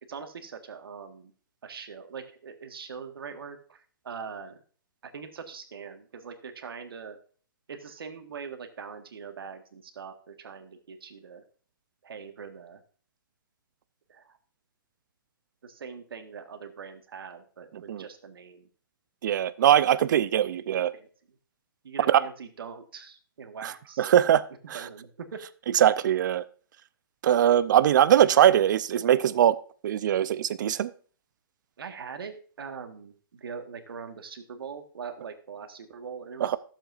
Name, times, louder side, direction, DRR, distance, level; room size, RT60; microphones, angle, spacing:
voice 1, 0.1-1.3 1.6-4.6 5.0-7.2 7.7-11.4 12.0-12.8 14.1-14.4 15.6-18.7 20.3-21.1 21.8-24.1 24.7-25.4 31.8-36.5, right 6 dB, 75° right, 6 dB, 1.6 m, -42 dB
voice 2, 19.2-20.9 22.1-22.2 23.6-23.7 24.0-24.4 25.7-26.4 27.2-29.6 29.8-30.9 36.4-36.6, right 10 dB, 55° right, 15 dB, 0.6 m, -21 dB
13.5 x 7.5 x 2.5 m, 0.42 s
hypercardioid pair, 150°, 12 cm